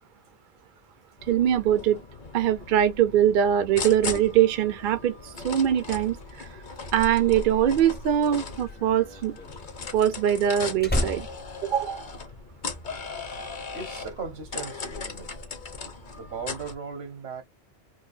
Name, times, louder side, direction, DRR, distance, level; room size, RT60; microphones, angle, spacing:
sound 1, 1.2-16.7, left 4 dB, 50° left, 0.9 m, -38 dB
voice 1, 1.3-2.0 2.3-6.5 6.9-9.4 9.9-11.3 11.6-12.1, right 10 dB, 60° right, 0.7 m, -22 dB
Slam, 8.5-12.6 12.9-13.3, equal, 15° left, 0.5 m, -33 dB
voice 2, 13.7-15.3 16.1-17.4, right 5 dB, 80° right, 1.5 m, -37 dB
4.7 x 2.2 x 2.6 m
omnidirectional pair, 1.0 m